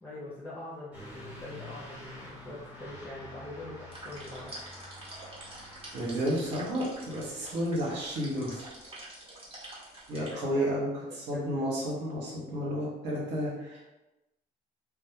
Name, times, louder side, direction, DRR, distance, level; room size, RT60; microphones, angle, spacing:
voice 1, 0.0-4.5 10.1-10.8 11.1-11.7, left 2 dB, 10° left, -7 dB, 0.5 m, -43 dB
Truck / Accelerating revving vroom, 0.9-8.9, left 1 dB, 10° right, 1.0 m, -49 dB
sound 1, 3.9-10.3, right 1 dB, 35° right, 0.8 m, -47 dB
voice 2, 5.9-8.7 10.1-10.9 11.1-13.9, equal, 85° right, -4 dB, 0.9 m, -31 dB
2.2 x 2.2 x 2.8 m, 1.0 s
cardioid pair, 110°, 17 cm